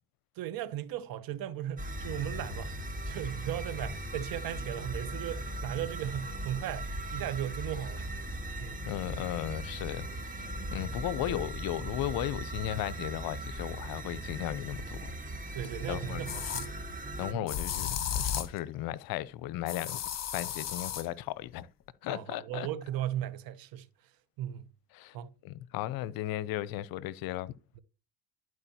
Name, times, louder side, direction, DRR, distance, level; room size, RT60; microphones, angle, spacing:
voice 1, 0.4-2.7 3.1-8.1 8.6-8.9 15.5-16.8 17.3-17.5 22.1-23.9 24.4-24.6 25.1-25.3, right 11 dB, 65° right, 0.8 m, -37 dB
sound 1, 1.8-17.3, right 1 dB, 20° right, 1.6 m, -39 dB
voice 2, 8.8-10.1 10.4-15.0 15.9-16.3 17.2-20.0 20.3-21.7 22.0-22.7 24.9-25.2 25.4-27.5, left 14 dB, 65° left, 0.6 m, -35 dB
sound 2, 15.1-15.2 16.3-16.7 17.5-18.6 19.7-21.1, left 9 dB, 40° left, 1.0 m, -34 dB
12.0 x 4.6 x 2.8 m
hypercardioid pair, 65°, 38 cm